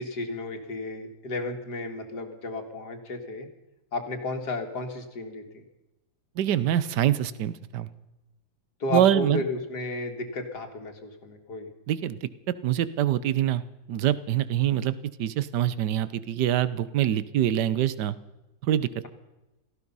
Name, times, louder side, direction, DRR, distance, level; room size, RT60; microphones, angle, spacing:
voice 1, 0.0-3.5 3.9-5.6 8.8-11.7, left 2 dB, 60° left, 5 dB, 2.5 m, -33 dB
voice 2, 6.4-7.9 8.9-9.4 11.9-12.3 12.6-13.6 13.9-18.2 18.7-19.0, right 11 dB, 65° right, 16 dB, 1.4 m, -25 dB
17.5 x 15.0 x 5.6 m, 1.0 s
omnidirectional pair, 2.1 m